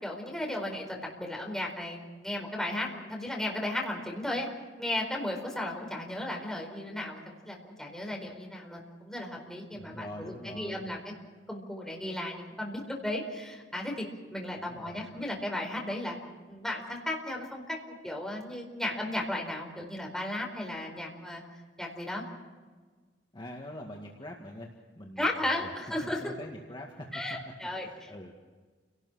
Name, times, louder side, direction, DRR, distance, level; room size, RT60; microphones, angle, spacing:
voice 1, 0.0-4.5 4.8-11.1 11.5-14.0 14.3-16.2 16.5-17.8 18.0-21.4 21.8-22.2 25.2-26.3 27.1-28.1, left 1 dB, 5° left, 0 dB, 4.7 m, -35 dB
voice 2, 9.7-10.9 14.6-15.1 23.3-24.7 25.0-25.7 26.0-27.1 27.8-28.3, left 1 dB, 25° left, 0 dB, 2.1 m, -44 dB
29.5 x 18.5 x 6.5 m, 1.4 s
head